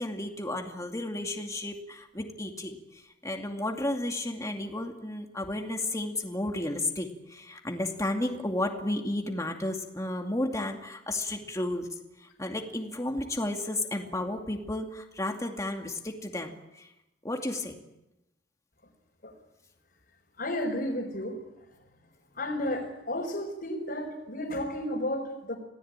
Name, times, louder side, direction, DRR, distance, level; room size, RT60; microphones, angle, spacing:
voice 1, 0.0-11.9 12.2-16.9 17.2-17.8, left 1 dB, 20° left, 2 dB, 2.4 m, -33 dB
voice 2, 20.4-21.4 22.3-25.6, left 1 dB, 60° left, -2 dB, 4.4 m, -32 dB
27.0 x 18.0 x 9.0 m, 0.94 s
head